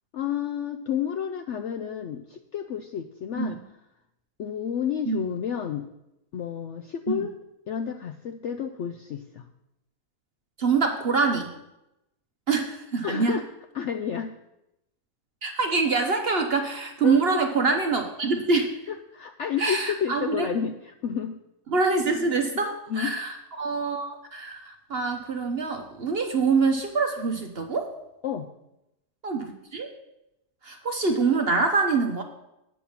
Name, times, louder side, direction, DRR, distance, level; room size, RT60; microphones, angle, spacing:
voice 1, 0.1-3.6 4.4-5.9 6.3-7.3 7.7-9.5 13.0-13.4 13.7-14.3 17.0-17.4 19.1-21.4 22.9-23.1 28.2-28.5, left 8 dB, 70° left, 7 dB, 0.7 m, -30 dB
voice 2, 10.6-11.5 12.5-13.4 15.4-18.7 19.6-20.5 21.7-27.9 29.2-29.9 30.6-32.2, right 4 dB, 45° right, 4 dB, 0.9 m, -25 dB
8.3 x 5.7 x 7.2 m, 0.88 s
omnidirectional pair, 1.7 m